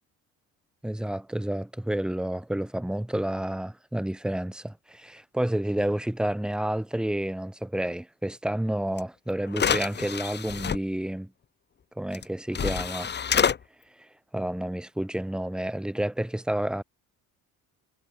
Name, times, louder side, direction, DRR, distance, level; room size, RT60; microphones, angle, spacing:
voice 1, 0.8-11.3 12.0-13.1 14.3-16.8, right 1 dB, ahead, 1.9 m, -30 dB
sound 1, 9.0-9.1 9.5-10.8 12.1-12.2 12.5-13.6, left 7 dB, 30° left, 3.8 m, -26 dB
cardioid pair, 165°, 36 cm